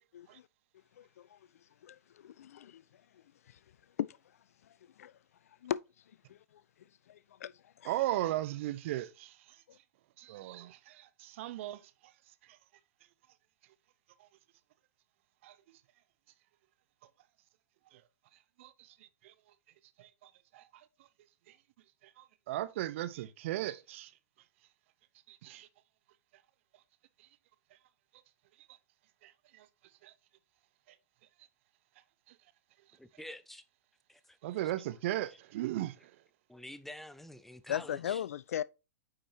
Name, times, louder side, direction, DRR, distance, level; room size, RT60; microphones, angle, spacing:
voice 1, 0.1-0.5 1.0-3.6 4.0-4.2 4.6-5.2 5.5-5.8 6.1-7.9 9.7-9.8 37.7-38.6, left 10 dB, 65° left, 0.4 m, -40 dB
voice 2, 7.8-9.6 10.2-11.9 12.4-12.6 14.2-14.3 15.4-15.6 17.9-18.0 18.6-19.3 20.0-20.9 21.5-21.6 22.0-24.1 25.3-25.7 27.2-27.3 29.2-29.7 30.0-30.1 32.3-32.4 34.4-36.1, right 15 dB, 50° right, 0.7 m, -37 dB
voice 3, 33.0-33.6 34.1-34.4 36.5-38.2, left 1 dB, 5° left, 0.5 m, -48 dB
8.8 x 5.0 x 2.8 m
figure-of-eight pair, 110°, 9 cm